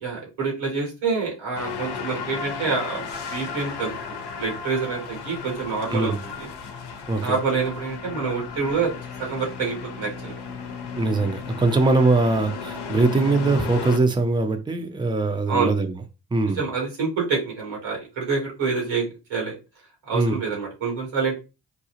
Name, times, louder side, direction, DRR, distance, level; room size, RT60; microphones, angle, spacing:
voice 1, 0.0-6.5 7.2-8.9 9.2-10.4 15.5-15.7 16.5-19.5 20.1-21.3, right 5 dB, 90° right, 1.4 m, -27 dB
sound 1, 1.5-14.0, left 6 dB, 60° left, 0.8 m, -34 dB
voice 2, 10.9-15.9 16.3-16.6 20.1-20.4, right 3 dB, 10° right, 0.6 m, -21 dB
3.8 x 2.3 x 2.9 m
supercardioid pair, 45°, 45 cm